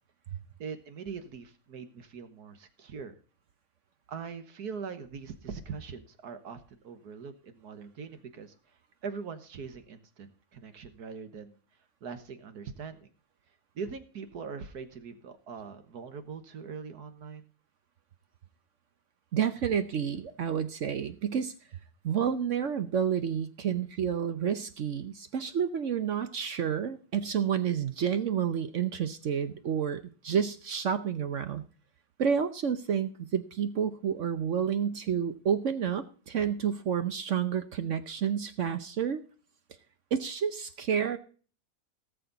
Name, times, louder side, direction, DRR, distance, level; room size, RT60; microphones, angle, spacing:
voice 1, 0.6-3.1 4.1-8.5 9.0-10.3 10.5-11.6 12.0-13.1 13.8-17.5, right 5 dB, 80° right, 9 dB, 1.8 m, -42 dB
voice 2, 19.3-21.5 22.0-31.6 32.2-39.2 40.1-41.2, right 8 dB, 55° right, 11 dB, 1.0 m, -30 dB
18.5 x 6.8 x 4.0 m, 0.41 s
omnidirectional pair, 1.7 m